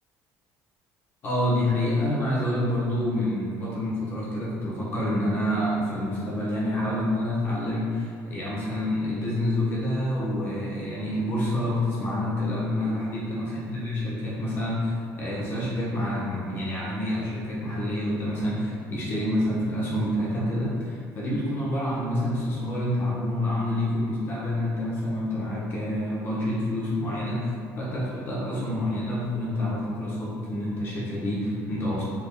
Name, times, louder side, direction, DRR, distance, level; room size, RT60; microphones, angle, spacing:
voice 1, 1.2-32.0, left 1 dB, 35° left, -7 dB, 1.0 m, -27 dB
3.8 x 3.5 x 2.2 m, 2.2 s
cardioid pair, 165°, 6 cm